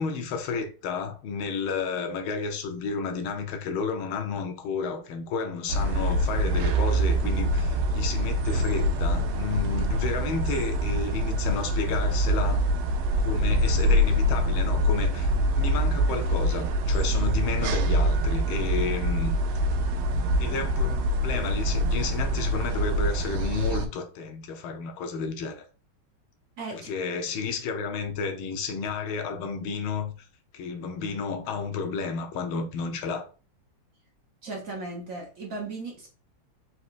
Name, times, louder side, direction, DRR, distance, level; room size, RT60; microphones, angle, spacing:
voice 1, 0.0-12.6 13.2-19.3 20.4-25.7 26.7-30.1 30.5-33.3, left 5 dB, 80° left, 1.6 m, -31 dB
sound 1, 5.7-23.9, equal, 85° right, 1.5 m, -25 dB
voice 2, 26.6-26.9 34.4-36.1, right 3 dB, 55° right, 1.0 m, -36 dB
4.4 x 4.1 x 2.4 m
omnidirectional pair, 2.3 m